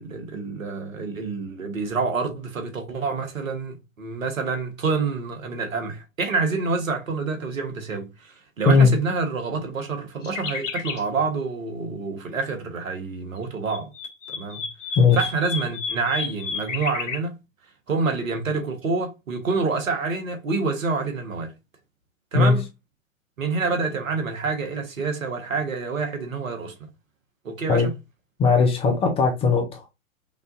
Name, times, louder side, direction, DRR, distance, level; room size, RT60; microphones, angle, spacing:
voice 1, 0.0-13.9 14.3-14.7 15.1-17.4 17.9-21.5 22.3-22.7 23.4-26.7 27.4-27.9, right 4 dB, 70° right, 1.4 m, -27 dB
sound 1, 10.2-11.0 13.4-17.2, left 6 dB, 60° left, 1.0 m, -32 dB
voice 2, 28.4-29.8, left 4 dB, 15° left, 0.6 m, -18 dB
5.6 x 2.5 x 2.6 m
figure-of-eight pair, 110°, 41 cm